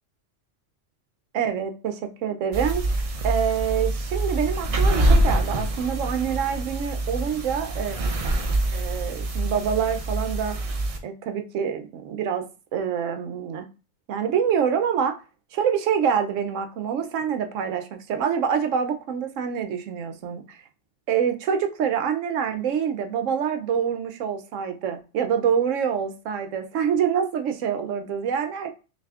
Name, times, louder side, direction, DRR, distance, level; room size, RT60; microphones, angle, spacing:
voice 1, 1.3-2.8 3.2-8.0 8.7-10.6 11.0-12.4 12.7-13.7 14.1-15.2 15.5-20.6 21.1-28.7, right 7 dB, 85° right, 7 dB, 1.0 m, -26 dB
sound 1, 2.5-11.0, right 1 dB, 55° right, 0.4 m, -25 dB
5.9 x 2.7 x 2.3 m, 0.34 s
omnidirectional pair, 1.3 m